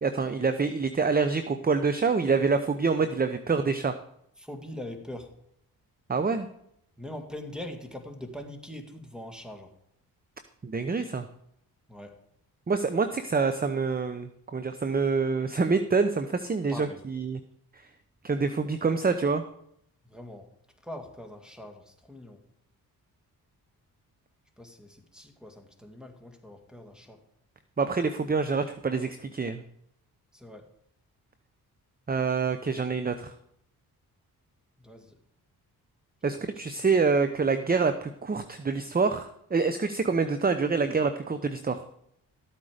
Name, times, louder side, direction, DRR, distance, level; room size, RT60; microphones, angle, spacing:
voice 1, 0.0-4.0 6.1-6.5 10.6-11.3 12.7-17.4 17.7-17.8 18.2-19.4 27.8-29.6 32.1-33.3 36.2-41.8, right 4 dB, 25° right, 9 dB, 0.7 m, -26 dB
voice 2, 4.4-5.3 7.0-9.7 11.9-12.2 16.7-17.0 20.0-20.5 20.8-22.4 24.6-27.2 30.3-30.7 34.8-35.2, left 1 dB, ahead, 5 dB, 2.2 m, -42 dB
13.5 x 8.5 x 5.0 m, 0.74 s
cardioid pair, 60°, 38 cm